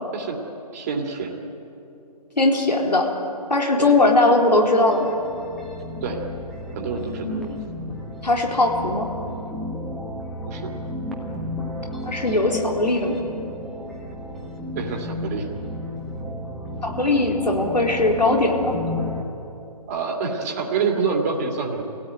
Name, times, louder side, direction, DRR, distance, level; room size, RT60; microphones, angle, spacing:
voice 1, 0.7-1.4 3.8-4.2 6.0-6.2 6.7-7.4 10.5-10.7 14.7-15.5 19.9-21.8, right 5 dB, 25° right, 1 dB, 2.6 m, -27 dB
voice 2, 2.4-3.1 3.5-5.1 7.1-7.5 8.2-9.1 12.1-13.2 16.8-18.8, left 2 dB, 80° left, 1 dB, 4.3 m, -20 dB
sound 1, 4.6-19.2, left 1 dB, ahead, 1.3 m, -33 dB
27.0 x 17.0 x 9.1 m, 2.9 s
figure-of-eight pair, 150°, 21 cm